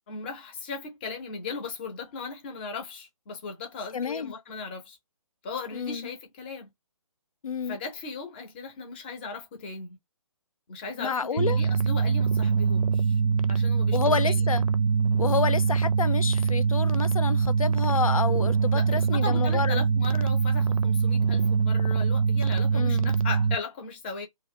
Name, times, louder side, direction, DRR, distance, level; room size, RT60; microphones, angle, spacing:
voice 1, 0.1-5.0 5.4-6.7 7.7-10.0 10.7-13.2 13.5-14.4 18.7-24.3, left 4 dB, 20° left, 0.6 m, -37 dB
voice 2, 3.9-4.3 5.7-6.1 7.4-7.8 11.0-11.6 13.9-14.6 15.2-19.8 22.7-23.1, left 5 dB, 75° left, 0.4 m, -29 dB
sound 1, 11.4-23.6, right 5 dB, 75° right, 0.5 m, -23 dB
2.2 x 2.1 x 3.3 m
figure-of-eight pair, 140°, 18 cm